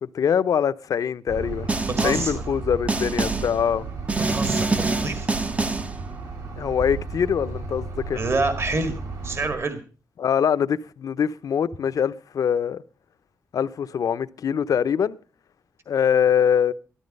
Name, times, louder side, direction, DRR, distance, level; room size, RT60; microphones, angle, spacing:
voice 1, 0.0-1.7 2.0-3.9 6.6-8.2 10.2-12.8 13.5-15.2 15.9-16.7, left 8 dB, 70° left, 0.7 m, -23 dB
sound 1, 1.3-9.6, right 3 dB, 75° right, 5.0 m, -34 dB
Snare drum, 1.7-2.4 2.9-3.6 4.1-6.0, right 3 dB, 20° right, 0.6 m, -25 dB
voice 2, 2.0-2.3 4.3-5.3 8.1-9.8, right 3 dB, 45° right, 1.7 m, -27 dB
13.5 x 13.0 x 5.3 m
wide cardioid pair, 115°, 6 cm